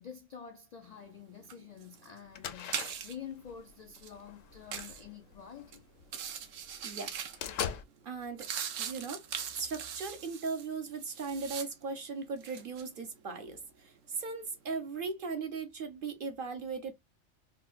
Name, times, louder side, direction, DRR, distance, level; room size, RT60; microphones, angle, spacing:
voice 1, 0.0-5.8, left 8 dB, 75° left, 0.3 m, -48 dB
sound 1, 0.9-1.2 1.5-3.3 3.8-4.1 4.7-5.0 5.6-5.8 6.0-7.6 8.0-12.0 12.3-12.9, right 8 dB, 85° right, 1.0 m, -41 dB
sound 2, 2.3-6.1 6.6-6.7 7.0-7.8, left 8 dB, 90° left, 1.0 m, -41 dB
voice 2, 6.8-7.2 8.1-8.5 8.8-9.3 9.6-16.9, right 4 dB, 55° right, 0.7 m, -38 dB
4.3 x 2.1 x 2.4 m
omnidirectional pair, 1.3 m